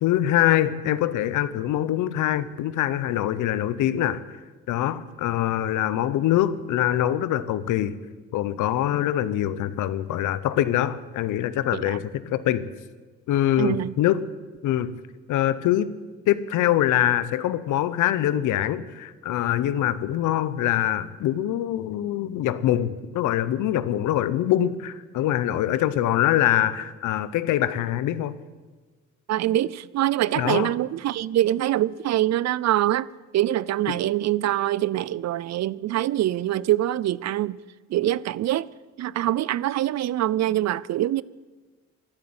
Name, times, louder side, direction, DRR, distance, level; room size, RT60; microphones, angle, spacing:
voice 1, 0.0-4.2 4.7-8.0 8.3-12.7 13.3-14.2 14.6-14.9 15.3-15.9 16.3-28.4 30.4-30.7 33.9-34.0, left 12 dB, 85° left, 0.8 m, -24 dB
voice 2, 13.6-13.9 29.3-33.1 33.3-37.6 37.9-38.7 39.0-41.2, right 13 dB, 60° right, 0.5 m, -24 dB
12.0 x 11.5 x 8.8 m
cardioid pair, 90°, 30 cm